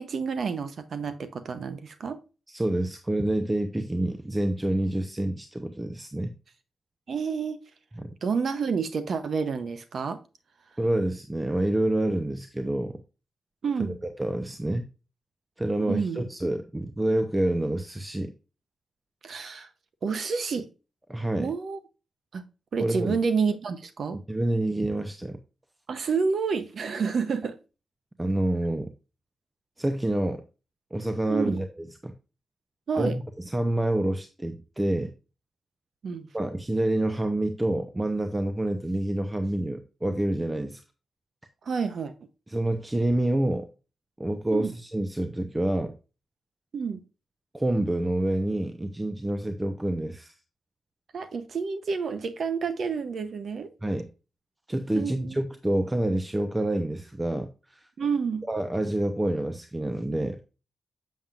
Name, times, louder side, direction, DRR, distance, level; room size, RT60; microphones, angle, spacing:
voice 1, 0.0-2.2 7.1-7.6 8.2-10.2 13.6-14.0 15.9-16.3 19.2-19.7 20.0-20.7 21.4-21.8 22.3-22.4 22.7-24.2 25.9-27.6 31.3-31.6 32.9-33.2 36.0-36.3 41.6-42.1 44.5-44.7 46.7-47.0 51.1-53.7 55.0-55.4 58.0-58.4, right 5 dB, 65° right, 0.8 m, -29 dB
voice 2, 2.5-6.3 8.0-8.1 10.8-13.0 13.8-13.9 14.2-14.9 15.6-18.3 21.1-21.5 22.8-23.2 24.3-25.4 28.2-28.9 29.8-30.4 30.9-31.7 32.0-32.1 33.0-35.1 36.3-40.8 42.5-43.7 44.2-46.0 47.5-50.4 53.8-54.1 54.7-57.9 58.5-60.4, right 1 dB, 20° right, 0.8 m, -27 dB
7.3 x 7.2 x 2.4 m
cardioid pair, 60°, 0 cm